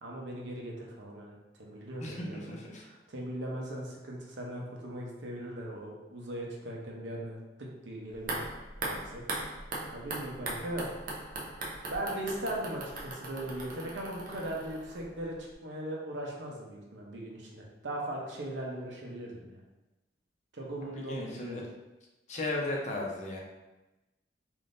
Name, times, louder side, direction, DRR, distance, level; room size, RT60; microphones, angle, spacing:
voice 1, 0.0-2.5 2.8-8.4 8.8-9.2 9.9-10.9 11.9-19.6 20.5-21.7, right 1 dB, 85° right, -2 dB, 0.7 m, -39 dB
voice 2, 2.0-2.8 21.1-21.6 22.3-23.4, left 2 dB, 40° left, -2 dB, 0.6 m, -35 dB
sound 1, 8.1-15.3 15.5-15.6, right 2 dB, 50° right, 0.5 m, -39 dB
3.5 x 2.6 x 2.5 m, 1.0 s
head